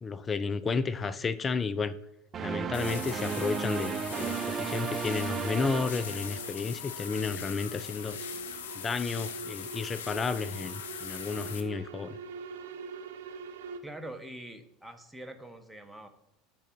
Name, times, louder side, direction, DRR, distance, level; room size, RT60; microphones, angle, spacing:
voice 1, 0.0-2.0 2.4-8.2 8.7-12.2, left 4 dB, 25° left, 15 dB, 0.5 m, -32 dB
sound 1, 2.3-6.8, right 7 dB, 35° right, 0.5 m, -34 dB
sound 2, 2.7-11.6, left 8 dB, 70° left, 0.9 m, -41 dB
sound 3, 5.9-13.8, right 4 dB, 70° right, 0.8 m, -45 dB
voice 2, 13.8-16.1, right 1 dB, 5° right, 7 dB, 1.1 m, -44 dB
10.0 x 3.8 x 6.0 m, 0.83 s
figure-of-eight pair, 75°, 0 cm